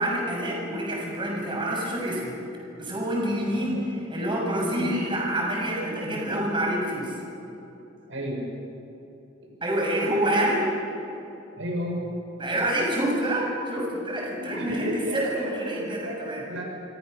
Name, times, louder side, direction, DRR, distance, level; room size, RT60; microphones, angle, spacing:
voice 1, 0.0-2.4 2.8-7.1 9.6-10.7 12.4-16.4, right 1 dB, 25° right, -2 dB, 7.0 m, -27 dB
voice 2, 5.7-6.4 8.1-8.4 9.4-9.5 11.6-12.1 14.4-15.4 15.7-16.2 16.4-16.6, equal, 80° right, 0 dB, 6.8 m, -33 dB
28.0 x 26.0 x 6.7 m, 3.0 s
head